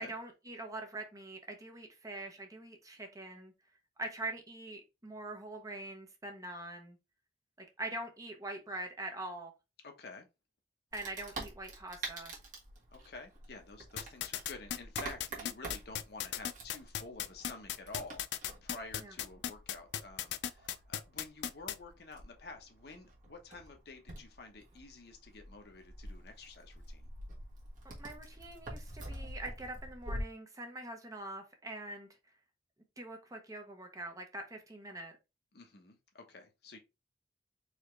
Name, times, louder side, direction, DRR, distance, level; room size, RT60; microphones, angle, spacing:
voice 1, 0.0-3.5 4.0-7.0 7.8-9.5 10.9-12.4 19.0-19.1 28.0-32.1 33.0-35.1, right 2 dB, 20° right, 0.9 m, -43 dB
voice 2, 9.8-10.3 12.9-27.1 35.5-36.8, left 3 dB, 65° left, 0.9 m, -50 dB
Wood, 10.9-30.2, right 1 dB, 50° right, 1.5 m, -47 dB
sound 1, 14.0-21.8, left 10 dB, 80° left, 0.4 m, -36 dB
4.1 x 2.9 x 3.2 m
head